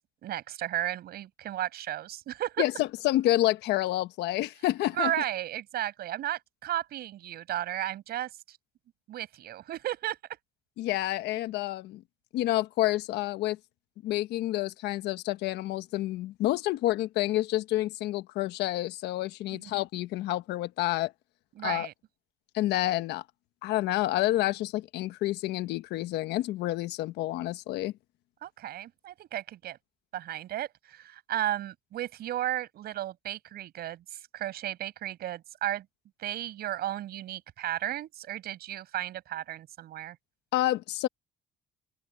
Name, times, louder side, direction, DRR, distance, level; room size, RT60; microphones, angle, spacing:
voice 1, 0.0-2.6 4.9-8.6 9.1-10.2 19.5-19.7 21.6-21.9 28.4-29.8 30.1-35.8 36.2-40.2, right 12 dB, 70° right, 6.7 m, -34 dB
voice 2, 2.6-5.1 10.8-12.0 12.3-13.6 14.0-21.1 21.6-21.9 22.5-23.2 23.6-27.9 40.5-41.1, left 16 dB, 80° left, 1.2 m, -29 dB
cardioid pair, 110°, 17 cm